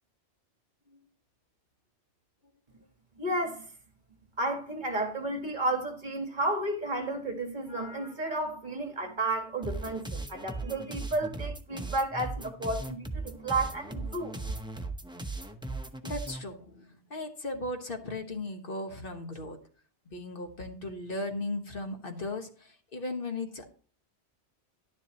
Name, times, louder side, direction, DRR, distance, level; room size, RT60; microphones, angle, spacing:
voice 1, 3.2-3.7 4.4-14.3, right 2 dB, 45° right, 1.6 m, -32 dB
sound 1, 9.6-16.4, right 2 dB, 5° right, 0.7 m, -38 dB
voice 2, 16.0-19.6 20.0-23.7, left 2 dB, 55° left, 1.4 m, -37 dB
11.0 x 10.5 x 2.9 m
omnidirectional pair, 1.1 m